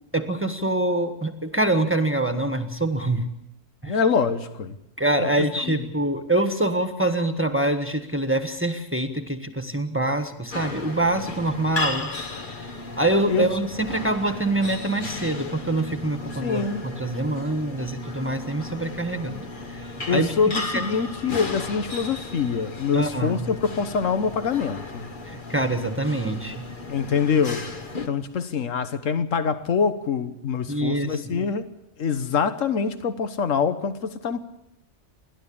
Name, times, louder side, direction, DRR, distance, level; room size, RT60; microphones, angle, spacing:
voice 1, 0.1-3.3 3.8-4.0 5.0-12.1 13.0-19.8 20.1-20.3 22.9-23.5 25.2-26.7 30.7-31.5, right 1 dB, 10° right, 1.4 m, -25 dB
voice 2, 3.9-4.8 5.2-5.3 5.6-5.7 13.3-13.5 16.2-16.8 20.1-25.1 26.9-27.7 28.1-31.7 32.0-34.4, left 6 dB, 85° left, 1.5 m, -25 dB
sound 1, 10.5-28.1, left 3 dB, 40° left, 1.6 m, -35 dB
30.0 x 12.0 x 8.7 m
omnidirectional pair, 1.3 m